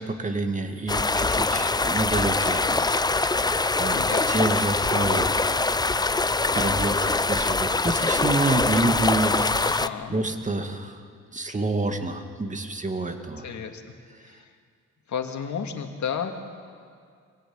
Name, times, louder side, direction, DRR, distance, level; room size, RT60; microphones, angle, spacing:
voice 1, 0.0-4.0 4.3-5.5 6.5-9.8 10.1-11.0 11.3-13.5, right 2 dB, 25° right, 6 dB, 2.1 m, -28 dB
sound 1, 0.9-9.9, left 3 dB, 15° left, 0.6 m, -23 dB
voice 2, 3.9-4.3 9.6-10.2 13.4-13.8 14.2-14.5 15.1-16.3, left 7 dB, 70° left, 5 dB, 2.2 m, -32 dB
24.5 x 17.0 x 8.8 m, 2.1 s
cardioid pair, 90°, 30 cm